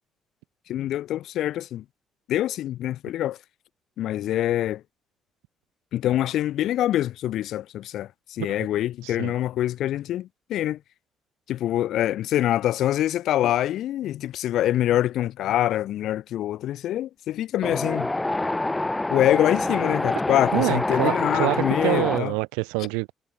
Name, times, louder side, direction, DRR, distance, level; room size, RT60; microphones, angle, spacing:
voice 1, 0.7-1.8 2.3-3.4 4.0-4.8 5.9-10.8 11.5-18.1 19.1-22.3, left 13 dB, 70° left, 5.2 m, -25 dB
Wind, 17.6-22.2, left 2 dB, 15° left, 3.6 m, -26 dB
voice 2, 20.5-23.1, right 34 dB, 85° right, 3.7 m, -26 dB
hypercardioid pair, 55°, 0 cm